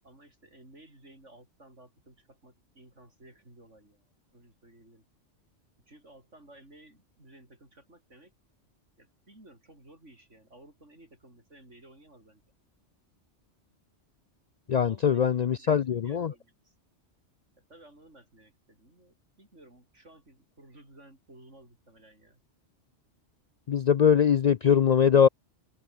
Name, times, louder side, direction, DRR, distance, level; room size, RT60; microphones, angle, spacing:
voice 1, 0.0-4.0 4.3-5.1 5.9-8.3 9.0-12.4 14.8-16.7 17.7-22.4, right 1 dB, 90° right, 8.1 m, -55 dB
voice 2, 14.7-16.3 23.7-25.3, left 8 dB, 60° left, 0.4 m, -22 dB
omnidirectional pair, 1.2 m